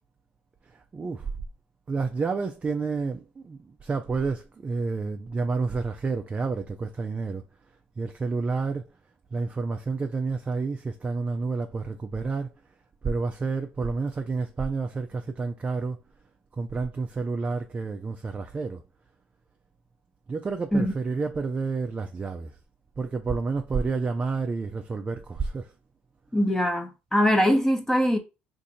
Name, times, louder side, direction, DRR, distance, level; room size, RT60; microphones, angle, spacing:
voice 1, 0.7-1.3 1.9-7.4 8.0-8.9 9.3-12.5 13.0-16.0 16.6-18.8 20.3-22.5 23.0-25.7, right 4 dB, 30° right, 0.4 m, -29 dB
voice 2, 26.3-28.2, equal, 10° left, 0.8 m, -22 dB
2.6 x 2.5 x 4.1 m
supercardioid pair, 80°, 5 cm